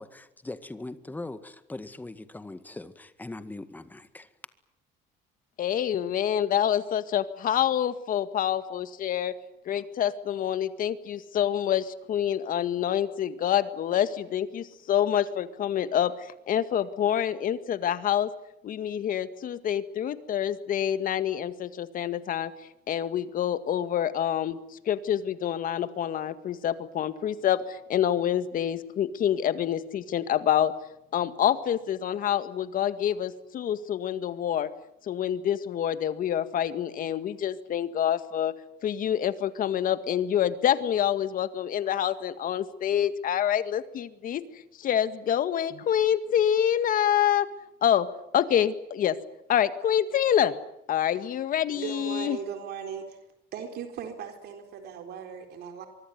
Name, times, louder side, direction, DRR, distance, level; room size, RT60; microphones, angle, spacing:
voice 1, 0.0-4.3, left 2 dB, 10° left, 12 dB, 1.9 m, -40 dB
voice 2, 5.6-9.3 9.7-16.1 16.5-18.3 18.6-22.5 22.9-24.6 24.9-30.7 31.1-34.7 35.1-38.5 38.8-44.4 44.8-47.5 47.8-48.1 48.3-49.2 49.5-50.5 50.9-52.4, left 10 dB, 50° left, 12 dB, 2.0 m, -26 dB
voice 3, 51.7-53.2 53.5-55.9, right 7 dB, 65° right, 6 dB, 4.1 m, -38 dB
24.5 x 24.0 x 9.5 m, 0.80 s
cardioid pair, 125°, 17 cm